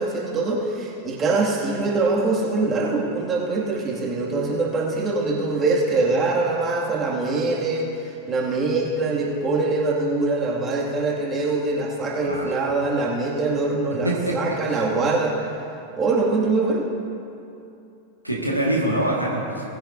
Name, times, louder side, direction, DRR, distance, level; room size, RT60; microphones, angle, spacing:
voice 1, 0.0-7.9 8.3-15.4 15.9-16.9, right 3 dB, 25° right, -3 dB, 2.1 m, -23 dB
voice 2, 12.2-12.5 14.0-14.3 18.2-19.6, right 1 dB, 90° right, -3 dB, 1.7 m, -24 dB
19.5 x 10.0 x 2.6 m, 2.7 s
figure-of-eight pair, 90°, 0 cm